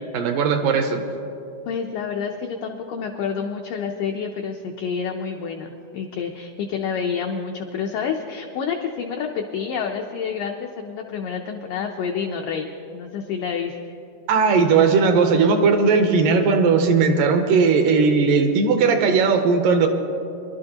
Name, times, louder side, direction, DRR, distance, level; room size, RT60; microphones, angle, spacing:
voice 1, 0.1-1.0 14.3-19.9, right 5 dB, 75° right, 5 dB, 2.1 m, -18 dB
voice 2, 1.7-14.0, left 6 dB, 85° left, 2 dB, 1.9 m, -28 dB
24.5 x 12.0 x 2.9 m, 2.7 s
omnidirectional pair, 4.6 m